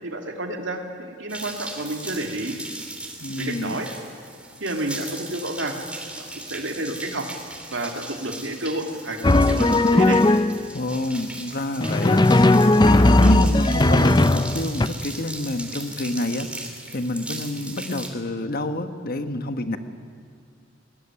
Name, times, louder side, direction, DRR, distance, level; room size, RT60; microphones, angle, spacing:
voice 1, 0.0-2.6 3.4-3.9 4.6-5.8 6.2-7.3 7.7-10.2, right 2 dB, 70° right, 3 dB, 3.1 m, -30 dB
sound 1, 1.3-18.1, right 2 dB, 5° right, 3.0 m, -38 dB
voice 2, 3.2-3.8 10.7-12.2 12.8-16.5 16.9-19.8, left 1 dB, 50° left, 8 dB, 1.4 m, -28 dB
Drum, 9.2-10.7 11.8-14.9, left 2 dB, 20° left, 0.6 m, -17 dB
23.0 x 20.5 x 9.9 m, 2.2 s
head